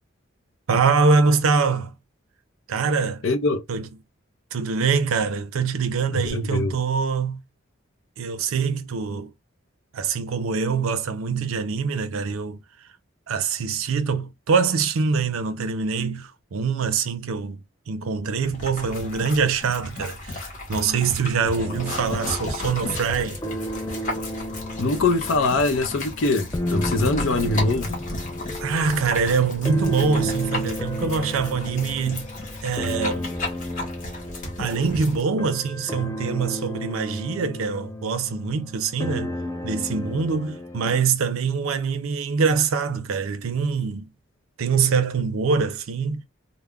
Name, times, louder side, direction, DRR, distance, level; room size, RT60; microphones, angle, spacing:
voice 1, 0.7-2.0 2.7-3.2 3.7-3.9 4.5-7.4 8.2-9.3 9.9-12.6 13.3-17.6 17.9-23.4 28.1-28.2 28.6-32.3 32.6-33.3 34.6-39.3 39.6-44.1 44.6-46.2, right 5 dB, 85° right, 0.5 m, -24 dB
voice 2, 3.2-3.6 6.1-6.7 24.8-28.0, left 2 dB, 70° left, 0.5 m, -23 dB
sound 1, 18.4-35.2, left 2 dB, 35° left, 0.8 m, -34 dB
sound 2, 21.5-41.0, equal, 15° left, 0.4 m, -33 dB
2.2 x 2.0 x 3.4 m
head